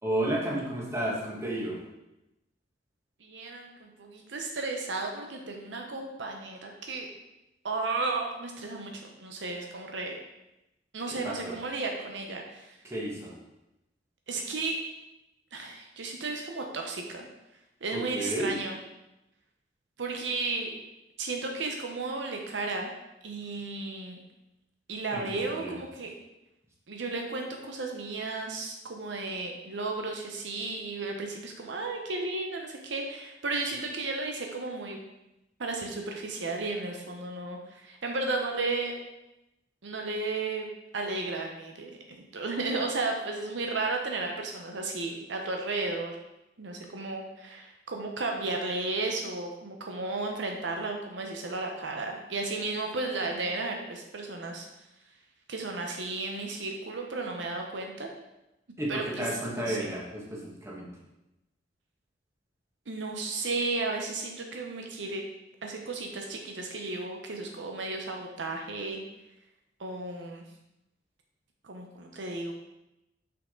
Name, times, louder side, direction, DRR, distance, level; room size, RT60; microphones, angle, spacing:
voice 1, 0.0-1.8 11.1-11.5 12.8-13.4 17.9-18.5 25.1-25.8 58.8-60.9, right 1 dB, 15° right, -3 dB, 1.4 m, -32 dB
voice 2, 3.2-7.1 7.6-10.2 10.9-12.8 14.3-14.8 15.5-17.2 17.8-18.8 20.0-20.7 21.2-22.9 23.2-24.2 24.9-26.1 26.9-35.0 35.6-38.9 39.8-46.2 46.6-54.7 55.5-58.1 58.9-59.3 59.6-59.9 62.9-65.2 65.6-69.0 69.8-70.4 71.6-72.5, right 3 dB, 70° right, 2 dB, 0.8 m, -34 dB
6.1 x 5.8 x 3.7 m, 0.93 s
head